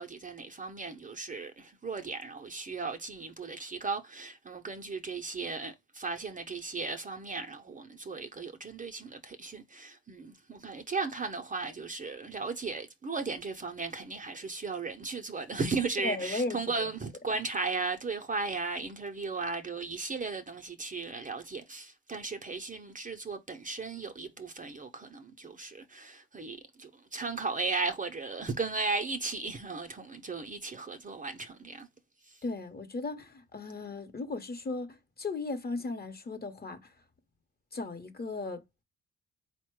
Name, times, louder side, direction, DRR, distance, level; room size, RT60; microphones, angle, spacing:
voice 1, 0.0-31.9 32.3-32.4, right 4 dB, 25° right, 0.6 m, -36 dB
voice 2, 16.0-16.9 32.4-36.8 37.7-38.6, left 3 dB, 30° left, 0.9 m, -36 dB
4.1 x 2.2 x 4.5 m
cardioid pair, 85°, 30 cm